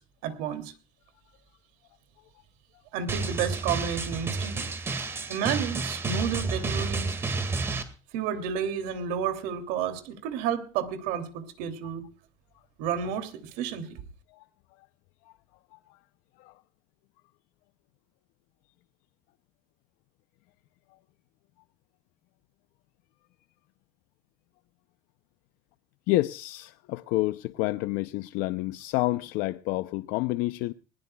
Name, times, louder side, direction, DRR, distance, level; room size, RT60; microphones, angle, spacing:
voice 1, 0.2-0.7 2.9-4.6 5.3-7.2 8.1-12.0 12.8-14.0, right 8 dB, 80° right, 2.8 m, -31 dB
Drum, 3.1-7.8, right 3 dB, 15° right, 2.0 m, -30 dB
voice 2, 26.1-30.7, left 18 dB, 70° left, 0.6 m, -29 dB
20.5 x 20.5 x 2.3 m
cardioid pair, 180°, 15 cm